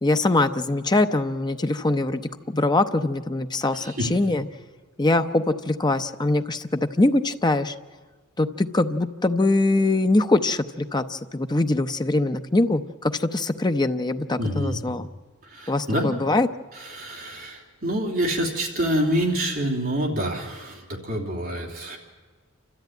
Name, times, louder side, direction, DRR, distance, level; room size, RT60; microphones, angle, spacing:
voice 1, 0.0-4.5 5.0-7.7 8.4-15.1 15.7-16.5, left 2 dB, 20° left, 8 dB, 0.7 m, -23 dB
voice 2, 3.7-4.2 14.4-14.8 15.4-16.1 16.7-22.0, equal, 40° right, 0 dB, 3.0 m, -27 dB
28.5 x 13.0 x 9.1 m, 1.4 s
head